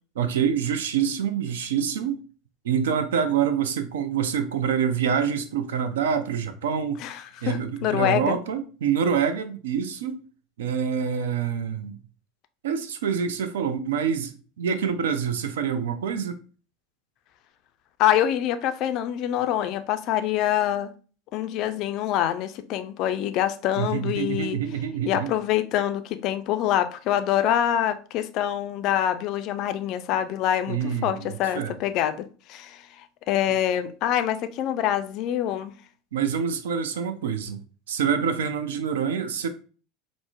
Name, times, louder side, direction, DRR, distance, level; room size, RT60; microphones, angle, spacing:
voice 1, 0.2-2.2 2.6-7.0 7.4-10.2 10.6-12.0 12.6-16.4 23.8-25.3 30.7-31.7 36.1-39.5, right 7 dB, 65° right, 0.3 m, -26 dB
voice 2, 7.0-8.4 18.0-20.9 21.3-24.6 25.0-35.7, left 11 dB, 45° left, 0.3 m, -25 dB
4.7 x 2.0 x 2.3 m
figure-of-eight pair, 75°, 0 cm